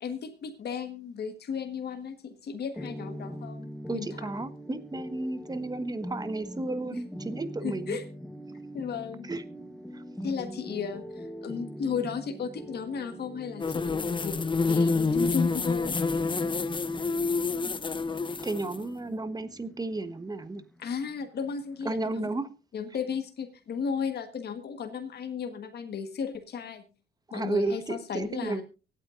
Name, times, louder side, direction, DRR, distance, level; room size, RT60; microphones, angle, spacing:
voice 1, 0.0-4.2 7.6-8.0 8.7-9.3 10.2-15.9 20.8-22.3 22.7-26.8 27.3-28.6, left 6 dB, 55° left, 7 dB, 1.5 m, -35 dB
sound 1, 2.7-22.3, equal, 5° left, 1.1 m, -42 dB
voice 2, 3.9-8.0 9.2-9.4 9.9-10.0 17.6-17.7 18.4-20.6 21.8-22.5 27.3-28.6, right 2 dB, 20° right, 11 dB, 1.3 m, -33 dB
sound 2, 13.6-18.8, left 4 dB, 25° left, 0.7 m, -28 dB
24.0 x 8.9 x 2.6 m, 0.33 s
cardioid pair, 90°, 20 cm